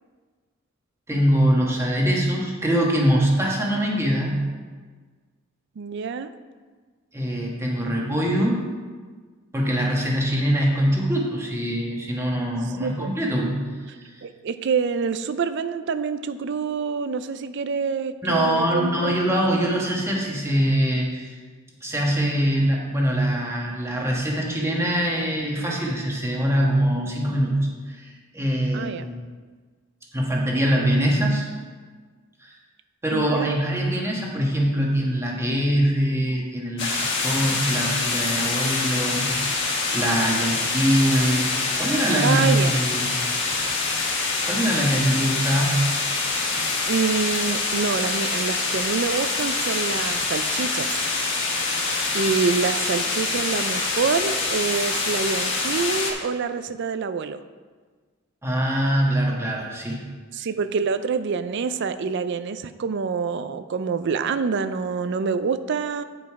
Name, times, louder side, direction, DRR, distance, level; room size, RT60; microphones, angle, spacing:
voice 1, 1.1-4.5 7.1-8.6 9.5-14.2 18.2-21.4 21.8-27.5 27.9-29.0 30.1-31.5 32.4-32.5 33.0-39.3 39.9-43.1 44.4-45.9 58.4-60.0, equal, 15° right, -2 dB, 1.4 m, -23 dB
voice 2, 5.8-6.3 12.8-13.1 14.2-19.2 28.7-29.1 33.1-33.6 42.2-42.8 46.9-51.0 52.1-57.4 60.3-66.0, right 5 dB, 60° right, 12 dB, 0.4 m, -26 dB
sound 1, 36.8-56.1, left 3 dB, 60° left, 1.4 m, -25 dB
9.2 x 5.3 x 4.7 m, 1.5 s
head